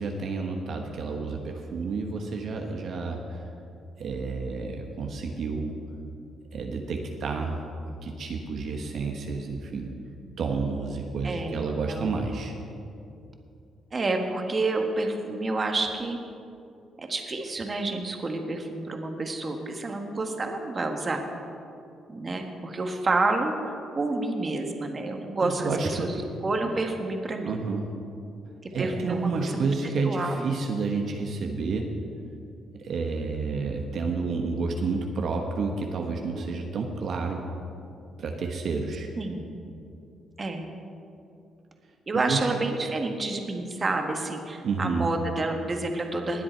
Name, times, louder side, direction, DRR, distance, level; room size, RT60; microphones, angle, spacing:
voice 1, 0.0-3.4 4.0-5.8 6.5-7.6 8.0-9.9 10.4-12.5 25.4-26.1 27.4-27.9 28.7-31.9 32.8-37.4 38.2-39.1 42.1-42.6 44.6-45.1, right 4 dB, 65° right, 2 dB, 1.1 m, -30 dB
voice 2, 11.2-12.1 13.9-16.2 17.0-21.2 22.1-27.5 28.8-29.7 30.0-30.5 39.2-39.4 40.4-40.6 42.1-46.4, right 2 dB, 35° right, 4 dB, 1.4 m, -29 dB
20.0 x 7.8 x 4.5 m, 2.6 s
cardioid pair, 90°, 0 cm